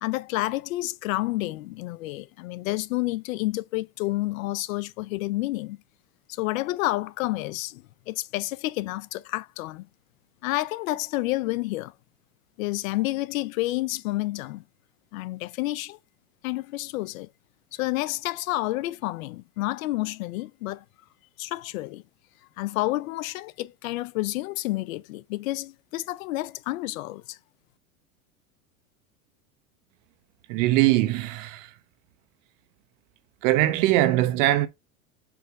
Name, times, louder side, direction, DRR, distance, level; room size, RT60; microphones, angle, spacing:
voice 1, 0.0-5.8 6.3-9.9 10.4-11.9 12.6-14.6 15.1-16.0 16.4-17.3 17.7-20.8 21.4-22.0 22.6-27.4, left 18 dB, 70° left, 0.6 m, -29 dB
voice 2, 30.5-31.7 33.4-34.7, right 15 dB, 60° right, 1.1 m, -21 dB
7.2 x 3.3 x 4.8 m
hypercardioid pair, 100°, 43 cm